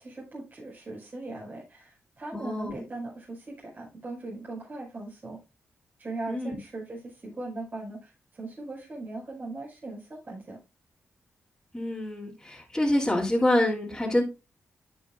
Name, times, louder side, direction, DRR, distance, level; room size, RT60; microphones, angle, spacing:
voice 1, 0.0-5.4 6.0-10.6, right 2 dB, 40° right, 5.5 m, -39 dB
voice 2, 2.3-2.8 6.3-6.6 11.7-14.2, left 1 dB, 10° left, 3.1 m, -26 dB
9.9 x 9.8 x 2.5 m
cardioid pair, 70°, 5 cm